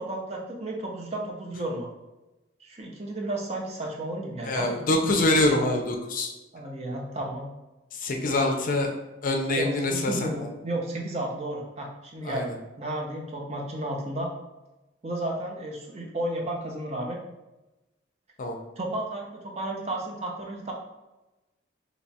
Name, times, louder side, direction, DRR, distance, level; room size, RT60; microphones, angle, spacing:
voice 1, 0.0-1.9 2.6-4.8 6.5-7.5 8.1-8.3 9.6-14.3 15.0-17.2 18.8-20.7, right 1 dB, 35° right, -1 dB, 0.6 m, -33 dB
voice 2, 4.4-6.3 7.9-8.9 9.2-10.3 12.2-12.5 18.4-18.6, left 2 dB, 45° left, 3 dB, 0.5 m, -25 dB
2.9 x 2.3 x 4.0 m, 1.0 s
head